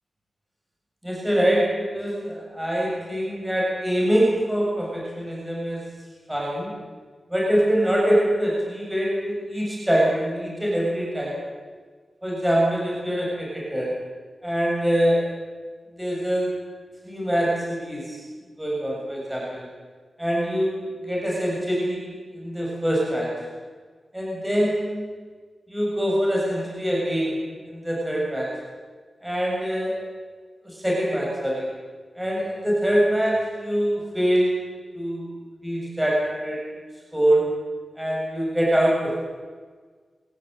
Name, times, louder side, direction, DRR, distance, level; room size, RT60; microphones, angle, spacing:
voice 1, 1.0-5.8 6.3-6.7 7.3-11.4 12.2-13.9 14.4-15.2 15.9-16.5 17.0-18.2 18.6-19.7 20.2-20.8 21.0-23.3 24.1-25.0 25.7-27.4 27.7-28.5 29.2-30.0 30.6-31.7 32.2-34.6 34.9-35.3 35.6-36.6 37.1-37.4 38.0-39.2, equal, 5° right, -4 dB, 7.2 m, -24 dB
24.5 x 17.5 x 9.1 m, 1.5 s
wide cardioid pair, 155°, 0 cm